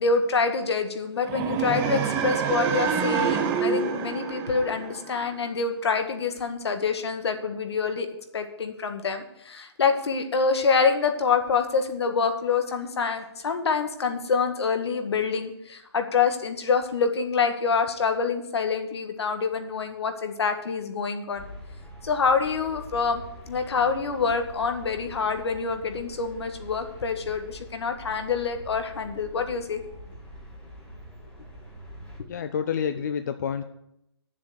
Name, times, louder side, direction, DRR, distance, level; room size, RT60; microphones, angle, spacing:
voice 1, 0.0-8.1 8.3-21.4 22.0-29.8, left 5 dB, 70° left, 6 dB, 1.7 m, -26 dB
sound 1, 1.2-5.4, right 6 dB, 15° right, 0.7 m, -27 dB
sound 2, 21.3-32.2, equal, 10° left, 2.1 m, -44 dB
voice 2, 32.3-33.6, left 7 dB, 40° left, 9 dB, 0.5 m, -28 dB
9.1 x 7.3 x 8.0 m, 0.80 s
hypercardioid pair, 165°, 14 cm